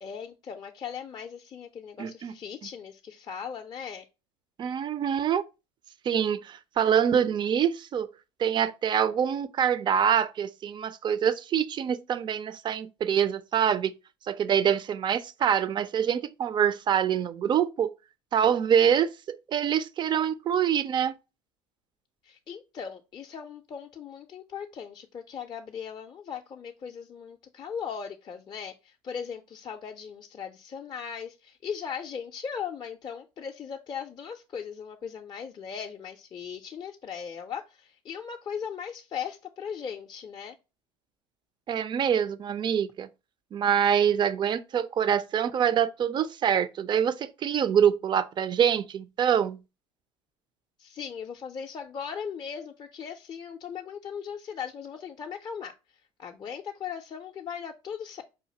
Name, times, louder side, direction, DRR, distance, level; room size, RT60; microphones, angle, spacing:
voice 1, 0.0-4.1 22.2-40.6 50.8-58.2, left 7 dB, 30° left, 0.4 m, -38 dB
voice 2, 2.0-2.3 4.6-5.5 6.0-8.1 8.4-13.9 14.3-17.9 18.3-21.2 41.7-43.1 43.5-49.6, right 8 dB, 30° right, 0.4 m, -25 dB
4.8 x 2.5 x 2.8 m
hypercardioid pair, 75°, 14 cm